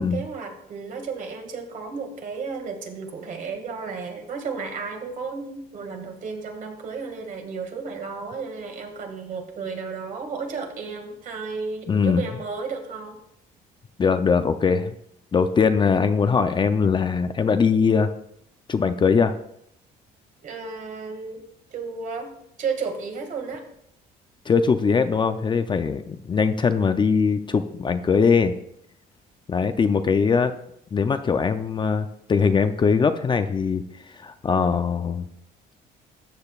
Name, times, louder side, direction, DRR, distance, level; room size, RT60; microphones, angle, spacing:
voice 1, 0.0-13.2 20.4-21.4 21.7-23.6, right 5 dB, 55° right, 4 dB, 2.0 m, -33 dB
voice 2, 11.9-12.2 14.0-14.9 15.3-18.1 18.7-19.3 24.5-28.5 29.5-30.5 30.9-33.8 34.1-35.2, left 5 dB, 30° left, 9 dB, 0.5 m, -21 dB
13.5 x 7.8 x 2.4 m, 0.74 s
cardioid pair, 110°, 17 cm